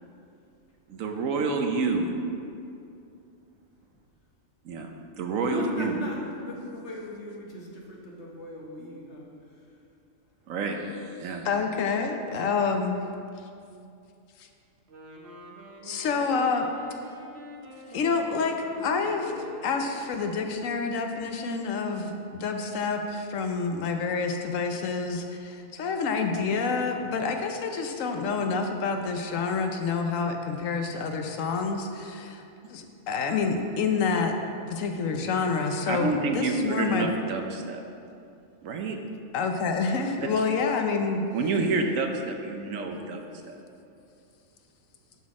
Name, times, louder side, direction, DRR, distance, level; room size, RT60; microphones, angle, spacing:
voice 1, 0.9-2.1 4.6-4.9 5.2-6.0 10.5-11.5 35.9-37.8 38.6-39.0 41.3-43.6, right 3 dB, 80° right, 3 dB, 1.2 m, -28 dB
voice 2, 5.4-9.7, left 1 dB, 60° left, -2 dB, 1.5 m, -38 dB
voice 3, 11.4-13.0 15.8-16.7 17.9-34.3 34.7-37.1 39.3-41.2, left 4 dB, 75° left, 4 dB, 1.1 m, -28 dB
Wind instrument woodwind instrument, 14.8-20.1, right 1 dB, 55° right, 1.2 m, -45 dB
11.0 x 4.2 x 4.8 m, 2.5 s
omnidirectional pair, 1.4 m